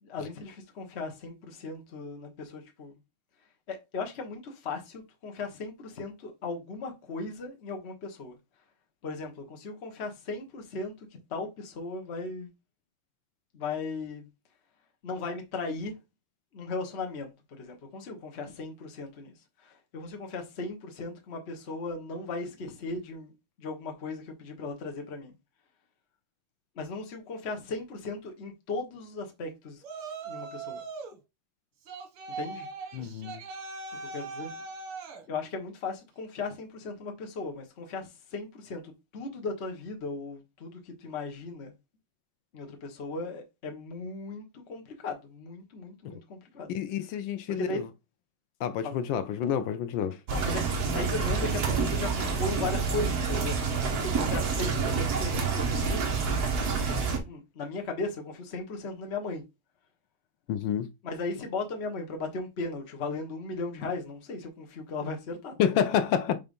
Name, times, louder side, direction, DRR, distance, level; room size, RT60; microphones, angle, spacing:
voice 1, 0.0-3.0 3.7-8.4 9.0-12.5 13.5-14.3 15.0-16.0 16.5-17.3 17.6-23.3 23.6-25.3 26.7-29.8 30.2-30.8 32.4-32.7 34.0-34.5 35.3-41.7 42.5-46.7 47.6-47.8 48.8-49.0 50.3-56.1 57.3-59.4 61.0-65.5, left 3 dB, 35° left, 1.3 m, -37 dB
Yell, 29.8-31.2 31.9-35.2, right 4 dB, 90° right, 2.0 m, -40 dB
voice 2, 32.9-33.4 46.0-46.2 46.7-47.8 48.6-50.2 60.5-60.9 65.6-66.4, left 8 dB, 75° left, 1.3 m, -29 dB
sound 1, 50.3-57.2, right 5 dB, 50° right, 1.7 m, -28 dB
5.6 x 3.4 x 5.2 m
omnidirectional pair, 2.3 m